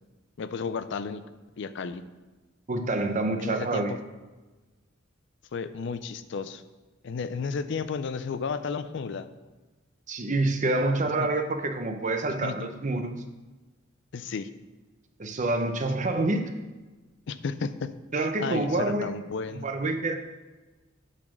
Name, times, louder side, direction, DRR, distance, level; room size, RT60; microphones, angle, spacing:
voice 1, 0.4-1.2 1.6-2.0 3.4-4.0 5.5-6.6 7.0-9.3 11.2-11.3 12.4-12.5 14.1-14.5 17.3-19.7, left 5 dB, 65° left, 12 dB, 0.4 m, -33 dB
voice 2, 2.7-4.0 10.1-13.2 15.2-16.5 18.1-19.1 19.6-20.1, right 2 dB, 40° right, 6 dB, 0.7 m, -27 dB
8.8 x 4.2 x 6.1 m, 1.2 s
head